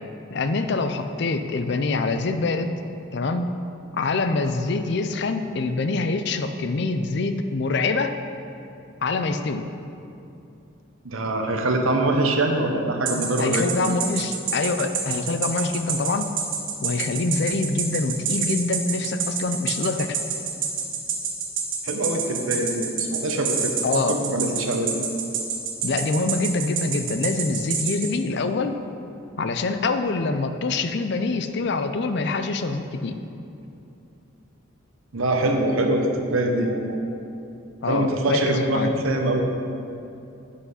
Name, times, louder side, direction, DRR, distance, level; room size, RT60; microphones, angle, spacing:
voice 1, 0.3-2.7 3.1-3.5 3.9-8.2 9.0-9.7 13.4-16.3 16.8-20.2 23.8-24.2 25.8-28.8 29.4-33.2 37.8-38.9, left 3 dB, 55° left, 9 dB, 0.4 m, -25 dB
voice 2, 11.0-13.8 21.8-23.7 24.1-24.9 35.1-37.0 37.9-39.4, right 1 dB, 80° right, 3 dB, 1.0 m, -23 dB
sound 1, 13.1-28.1, right 8 dB, 65° right, 1.3 m, -26 dB
8.2 x 5.7 x 5.6 m, 2.7 s
head